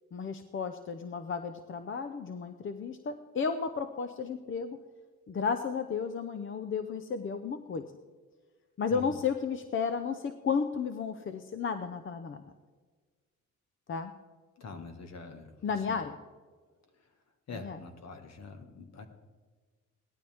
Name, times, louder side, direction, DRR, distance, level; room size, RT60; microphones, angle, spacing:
voice 1, 0.1-4.8 5.3-7.9 8.8-12.4 13.9-14.1 15.6-16.1 17.5-17.8, left 5 dB, 40° left, 9 dB, 0.8 m, -33 dB
voice 2, 14.6-15.6 15.9-16.0 17.5-19.1, left 4 dB, 60° left, 6 dB, 1.7 m, -44 dB
17.5 x 12.0 x 3.6 m, 1.4 s
cardioid pair, 90°, 30 cm